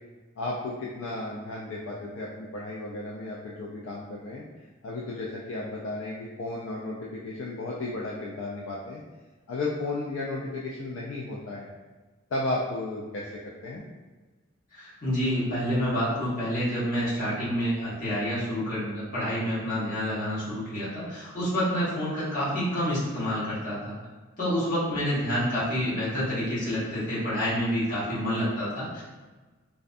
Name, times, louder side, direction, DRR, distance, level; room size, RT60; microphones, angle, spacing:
voice 1, 0.4-4.4 4.8-9.0 9.5-11.7 12.3-13.8, left 2 dB, 65° left, -4 dB, 0.3 m, -34 dB
voice 2, 14.7-24.0 24.4-29.0, equal, 40° left, -10 dB, 1.1 m, -28 dB
2.5 x 2.2 x 2.5 m, 1.3 s
head